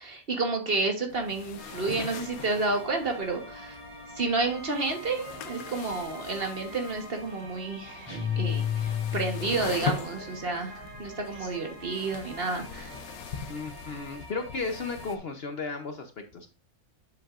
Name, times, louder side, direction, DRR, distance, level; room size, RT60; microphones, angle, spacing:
voice 1, 0.0-3.8 4.2-12.9, right 3 dB, 45° right, 4 dB, 1.3 m, -30 dB
sound 1, 1.1-15.2, left 6 dB, 80° left, 1.1 m, -41 dB
sound 2, 1.6-15.2, right 1 dB, 85° right, 4.4 m, -46 dB
sound 3, 8.1-9.8, left 9 dB, 15° left, 3.8 m, -30 dB
voice 2, 13.5-16.5, left 4 dB, 50° left, 6 dB, 0.9 m, -35 dB
7.5 x 7.4 x 2.5 m, 0.35 s
omnidirectional pair, 1.5 m